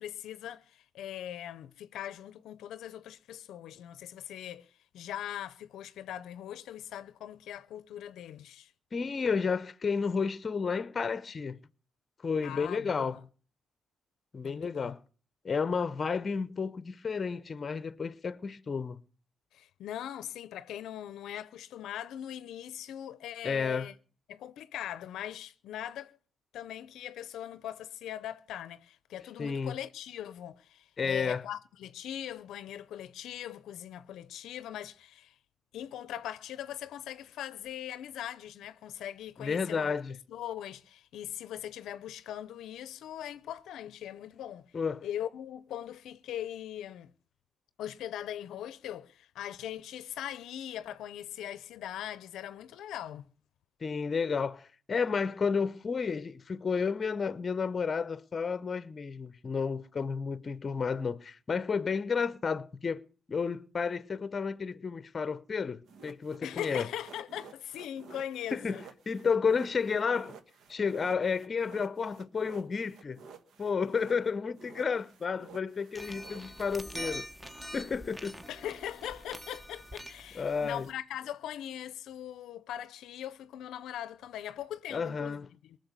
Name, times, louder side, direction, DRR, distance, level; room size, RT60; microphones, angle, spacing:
voice 1, 0.0-8.7 12.4-13.2 14.4-14.9 19.5-23.9 24.3-26.2 26.5-35.4 35.7-39.9 40.3-44.7 45.0-47.1 47.8-53.3 66.4-68.8 78.5-85.8, left 11 dB, 80° left, 0.6 m, -41 dB
voice 2, 8.9-11.6 12.2-13.2 14.3-15.0 15.4-19.0 23.4-23.9 29.4-29.8 31.0-31.4 39.4-40.2 44.7-45.0 53.8-63.0 63.3-66.9 68.5-70.3 70.7-73.2 73.6-77.3 77.7-78.4 80.3-80.9 84.9-85.5, left 5 dB, 35° left, 0.7 m, -31 dB
sound 1, 65.9-74.3 74.6-77.2, right 5 dB, 70° right, 1.3 m, -52 dB
sound 2, 75.9-80.9, equal, 15° right, 1.3 m, -45 dB
19.5 x 6.6 x 8.1 m
cardioid pair, 90°, 0 cm